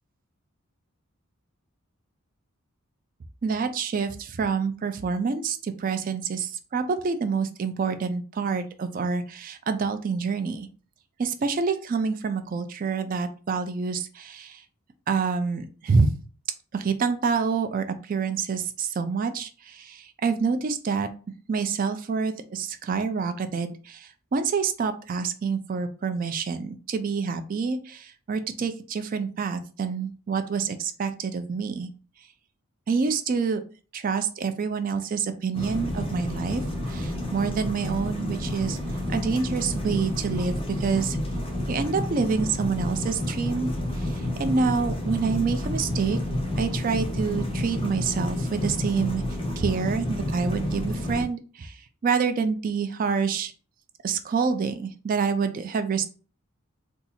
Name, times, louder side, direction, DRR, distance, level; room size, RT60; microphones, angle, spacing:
voice 1, 3.4-10.7 11.2-14.6 15.1-16.1 16.7-21.1 21.5-31.9 32.9-33.6 33.9-36.6 36.9-38.8 39.1-41.2 41.7-43.7 44.0-46.2 46.6-49.2 49.6-53.5 54.0-56.1, right 5 dB, 40° right, 9 dB, 0.3 m, -27 dB
sound 1, 35.5-51.2, left 1 dB, 25° left, 0.7 m, -30 dB
2.7 x 2.3 x 4.1 m, 0.38 s
head